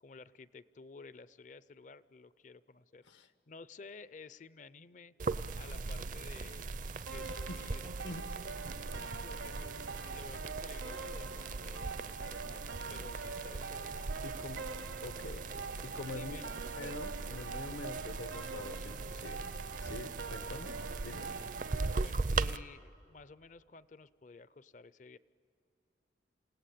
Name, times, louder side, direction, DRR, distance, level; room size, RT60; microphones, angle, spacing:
voice 1, 0.0-5.1 5.5-6.7 7.0-7.8 8.8-14.0 16.1-16.5 21.7-25.2, left 4 dB, 40° left, 17 dB, 0.5 m, -53 dB
sound 1, 5.2-22.6, right 3 dB, 45° right, 0.5 m, -40 dB
sound 2, 7.1-22.1, right 4 dB, 80° right, 0.9 m, -44 dB
voice 2, 14.2-14.7 15.0-15.5 15.8-16.4 16.7-19.5 19.8-20.7 21.0-21.3, left 2 dB, 85° left, 10 dB, 1.2 m, -45 dB
28.0 x 17.5 x 8.5 m, 2.7 s
head